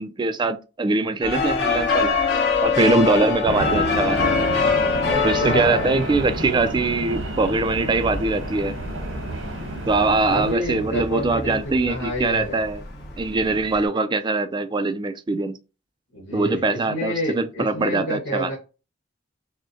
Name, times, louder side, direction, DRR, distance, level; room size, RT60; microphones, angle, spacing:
voice 1, 0.0-2.2 2.6-4.3 5.2-8.7 9.9-12.8 13.2-15.6 16.3-18.6, right 3 dB, 25° right, 0.3 m, -22 dB
sound 1, 1.2-13.8, left 5 dB, 55° left, 1.2 m, -26 dB
sound 2, 3.4-10.5, right 1 dB, 85° right, 1.1 m, -30 dB
voice 2, 5.1-5.9 10.3-12.6 16.1-18.6, equal, 80° left, 1.5 m, -29 dB
6.1 x 2.1 x 2.7 m
head